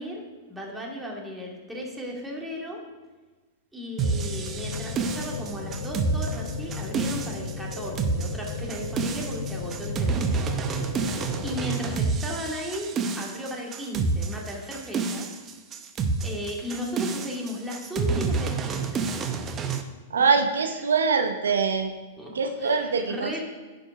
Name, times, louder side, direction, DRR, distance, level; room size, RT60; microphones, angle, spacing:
voice 1, 0.0-2.8 3.7-10.4 11.4-12.9 13.2-15.3 16.2-19.0 19.3-19.5 22.2-22.3 22.6-23.4, equal, 5° right, -2 dB, 2.3 m, -36 dB
sound 1, 4.0-11.6, left 4 dB, 60° left, 1.4 m, -35 dB
sound 2, 4.0-19.8, right 4 dB, 30° right, 0.9 m, -29 dB
voice 2, 20.1-21.9 22.3-23.3, right 5 dB, 75° right, 6 dB, 0.8 m, -23 dB
10.5 x 5.3 x 4.8 m, 1.3 s
figure-of-eight pair, 100°, 0 cm